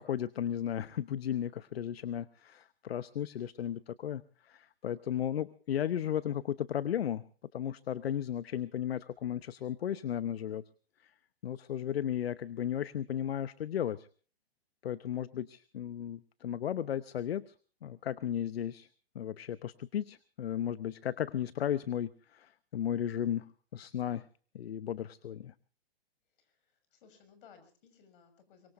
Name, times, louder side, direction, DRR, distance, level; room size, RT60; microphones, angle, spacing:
voice 1, 0.0-7.2 7.5-10.6 11.4-14.1 14.8-17.5 17.8-18.9 19.1-24.3 24.5-25.5, left 10 dB, 70° left, 16 dB, 0.9 m, -35 dB
voice 2, 26.4-28.7, left 6 dB, 55° left, 9 dB, 6.1 m, -60 dB
24.0 x 23.0 x 2.6 m, 0.42 s
hypercardioid pair, 120°, 31 cm